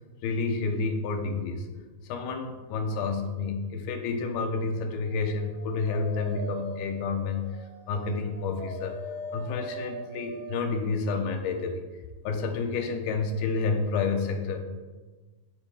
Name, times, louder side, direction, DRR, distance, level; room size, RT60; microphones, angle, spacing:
voice 1, 0.2-1.7 2.0-7.6 7.9-9.0 9.3-11.8 12.2-14.6, left 4 dB, 80° left, 4 dB, 2.8 m, -29 dB
Dog, 5.2-10.8, equal, 5° left, 1.0 m, -41 dB
19.0 x 6.9 x 2.4 m, 1.3 s
omnidirectional pair, 4.5 m